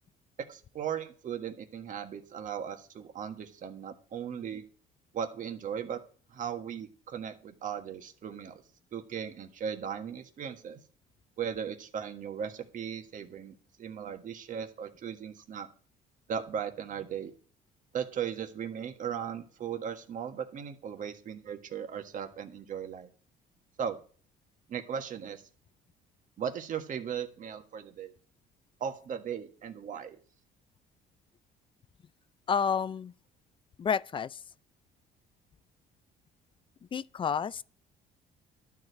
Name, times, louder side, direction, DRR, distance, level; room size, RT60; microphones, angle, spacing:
voice 1, 0.5-4.6 5.1-6.0 6.3-8.6 8.9-10.8 11.4-15.7 16.3-17.3 17.9-23.1 23.8-24.0 24.7-25.4 26.4-28.1 28.8-30.2, right 8 dB, 50° right, 1.6 m, -37 dB
voice 2, 32.5-33.1 33.8-34.4 36.9-37.6, left 6 dB, 30° left, 0.4 m, -30 dB
12.0 x 4.9 x 8.1 m
cardioid pair, 110°, 17 cm